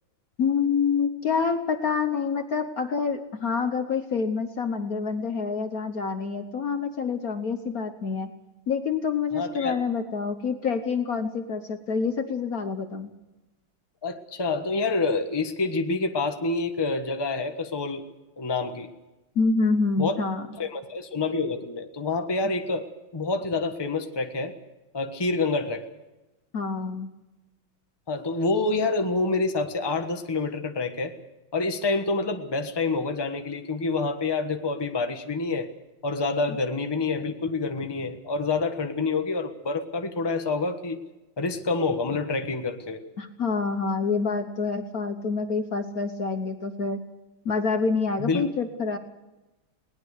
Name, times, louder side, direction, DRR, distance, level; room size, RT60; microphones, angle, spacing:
voice 1, 0.4-8.3 8.7-13.1 19.3-20.5 26.5-27.1 43.2-47.0 47.4-49.0, left 5 dB, 50° left, 7 dB, 1.4 m, -27 dB
voice 2, 9.3-9.8 14.0-18.0 18.4-18.9 20.0-20.2 20.5-22.8 23.1-24.5 24.9-25.8 28.1-31.1 31.5-35.7 36.0-41.0 41.4-43.0 48.2-48.5, left 3 dB, 15° left, 6 dB, 1.1 m, -27 dB
21.0 x 19.0 x 6.6 m, 1.0 s
omnidirectional pair, 2.2 m